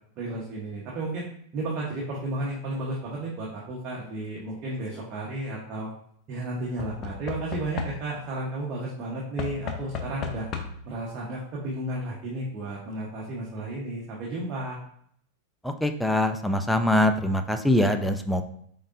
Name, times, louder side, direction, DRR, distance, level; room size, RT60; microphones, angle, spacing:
voice 1, 0.2-1.3 1.5-5.9 6.3-10.5 10.8-14.8, right 2 dB, 45° right, -4 dB, 1.2 m, -33 dB
Knock / Wood, 4.6-5.1 6.8-8.3 9.4-11.0 12.0-12.1 12.3-12.4, left 5 dB, 40° left, 0.7 m, -36 dB
voice 2, 15.6-18.4, left 1 dB, 5° left, 7 dB, 0.5 m, -23 dB
5.1 x 3.8 x 2.7 m, 0.65 s
hypercardioid pair, 105°, 0 cm